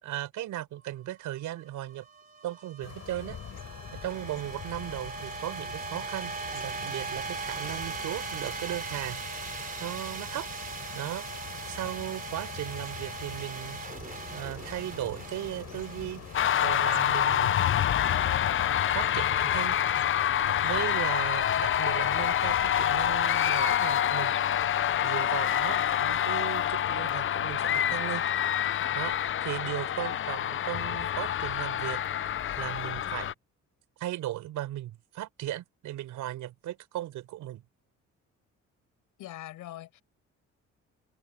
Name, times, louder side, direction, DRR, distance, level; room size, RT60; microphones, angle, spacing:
voice 1, 0.0-2.1 2.4-3.4 3.9-9.2 9.8-10.5 10.9-13.9 14.3-16.2 16.6-17.6 18.9-19.8 20.6-24.4 25.0-28.2 28.9-32.0 32.6-33.3 34.0-37.6, right 14 dB, 85° right, 4.8 m, -37 dB
sound 1, 0.7-19.0, right 4 dB, 30° right, 3.1 m, -40 dB
sound 2, 2.8-20.9, left 8 dB, 60° left, 6.4 m, -44 dB
sound 3, 16.3-33.3, left 10 dB, 40° left, 0.6 m, -27 dB
voice 2, 39.2-40.0, left 14 dB, 85° left, 5.9 m, -42 dB
open air
cardioid pair, 90°, 30 cm